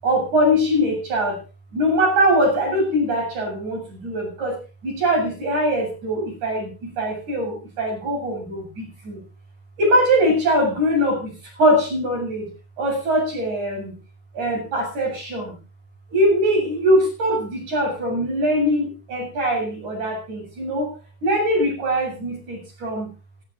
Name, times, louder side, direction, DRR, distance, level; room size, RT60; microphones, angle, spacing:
voice 1, 0.0-1.4 1.7-9.2 9.8-12.5 12.8-13.9 14.3-15.6 16.1-20.9 21.2-23.1, equal, 80° right, 0 dB, 9.3 m, -22 dB
25.5 x 12.5 x 2.6 m, 0.31 s
omnidirectional pair, 3.4 m